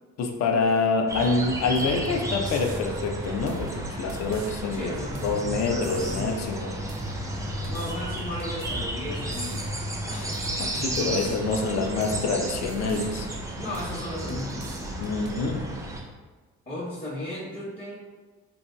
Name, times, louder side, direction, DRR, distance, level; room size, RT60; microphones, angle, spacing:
voice 1, 0.2-4.9 5.2-6.8 10.1-10.3 10.6-13.3 15.0-15.6, left 3 dB, 60° left, 4 dB, 0.5 m, -26 dB
sound 1, 1.1-16.0, right 1 dB, 10° right, 0.4 m, -34 dB
sound 2, 1.8-2.0 2.4-2.8 3.5-4.5 5.2-5.4 5.8-6.3 6.9-7.2 7.6-8.9 9.3-9.7 10.3-10.6 11.0-11.4 12.0-12.3 12.7-13.1 13.7-14.0 14.3-15.5, right 3 dB, 65° right, 0.5 m, -42 dB
sound 3, 2.0-12.2, left 1 dB, 90° left, 1.4 m, -38 dB
voice 2, 4.7-6.4 7.7-9.7 10.7-12.2 13.5-15.0 16.7-17.9, left 1 dB, 35° left, -10 dB, 1.1 m, -36 dB
3.0 x 2.7 x 2.2 m, 1.3 s
cardioid pair, 90°, 30 cm